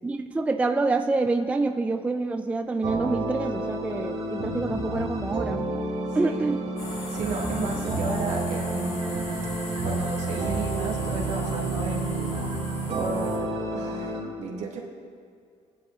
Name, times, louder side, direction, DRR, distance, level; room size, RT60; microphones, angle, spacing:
voice 1, 0.0-5.6 6.1-6.6, right 3 dB, 10° right, 6 dB, 0.4 m, -26 dB
sound 1, 2.8-14.2, right 2 dB, 55° right, 2.1 m, -30 dB
sound 2, 6.8-13.4, left 2 dB, 60° left, 2.5 m, -39 dB
voice 2, 7.1-9.2 9.8-12.4 12.9-14.8, right 4 dB, 75° right, -3 dB, 2.0 m, -34 dB
19.0 x 10.5 x 2.4 m, 2.2 s
cardioid pair, 140°, 12 cm